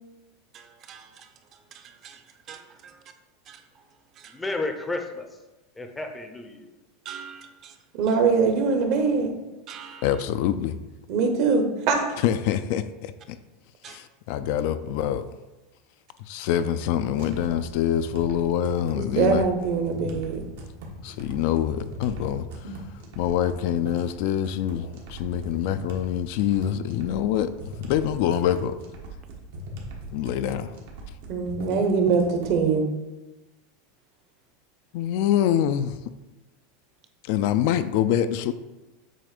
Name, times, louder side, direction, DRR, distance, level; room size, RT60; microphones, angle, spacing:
voice 1, 0.5-3.0 3.5-3.8 4.1-4.4 7.0-7.8 8.1-8.2 9.7-10.2 13.8-14.0, right 7 dB, 35° right, 7 dB, 0.6 m, -45 dB
voice 2, 4.3-5.3 5.8-6.7, left 2 dB, 10° left, 5 dB, 0.5 m, -32 dB
voice 3, 8.0-9.3 11.1-12.0 19.0-20.4 31.3-32.8, right 5 dB, 50° right, 4 dB, 1.0 m, -22 dB
voice 4, 10.0-10.8 12.2-13.4 13.9-15.2 16.3-19.5 21.0-22.8 23.2-27.5 27.8-28.8 30.1-30.7 34.9-36.0 37.2-38.5, left 10 dB, 60° left, 12 dB, 0.3 m, -25 dB
sound 1, 17.2-32.6, equal, 80° right, 1.3 m, -40 dB
7.5 x 2.6 x 5.1 m, 1.1 s
supercardioid pair, 145°, 0 cm